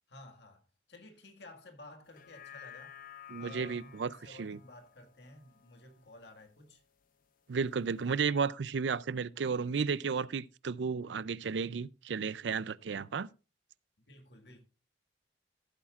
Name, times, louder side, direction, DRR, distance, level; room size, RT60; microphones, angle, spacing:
voice 1, 0.1-0.6 0.9-3.0 3.4-6.8 14.1-14.6, left 2 dB, 65° left, 1.8 m, -53 dB
sound 1, 2.0-6.6 7.0-7.1, left 8 dB, 45° left, 0.6 m, -53 dB
voice 2, 3.3-4.6 7.5-13.3, right 5 dB, 75° right, 0.5 m, -33 dB
15.0 x 8.6 x 2.4 m
head